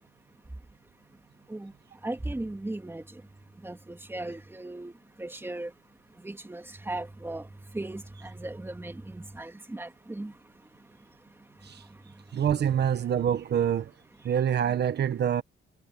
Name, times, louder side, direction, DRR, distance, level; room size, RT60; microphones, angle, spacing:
voice 1, 2.0-3.0 3.6-4.9 5.2-5.7 6.2-7.5 7.7-10.3, right 2 dB, 10° right, 2.5 m, -37 dB
voice 2, 12.3-13.9 14.2-15.4, right 9 dB, 55° right, 1.3 m, -26 dB
cardioid pair, 90°, 20 cm